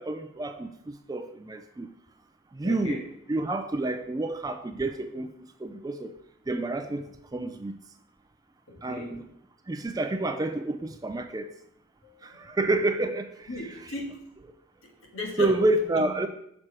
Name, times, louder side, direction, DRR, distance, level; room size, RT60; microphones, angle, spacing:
voice 1, 0.0-1.9 2.5-3.0 3.3-5.3 5.6-6.1 6.5-7.7 8.8-9.3 9.7-11.5 12.2-13.5 15.4-16.3, right 2 dB, 20° right, 7 dB, 0.3 m, -29 dB
voice 2, 2.6-3.1 8.7-9.2 12.0-12.5 13.5-14.3 14.8-15.6 16.0-16.1, left 2 dB, 80° left, 1 dB, 1.4 m, -37 dB
6.2 x 4.6 x 4.4 m, 0.73 s
head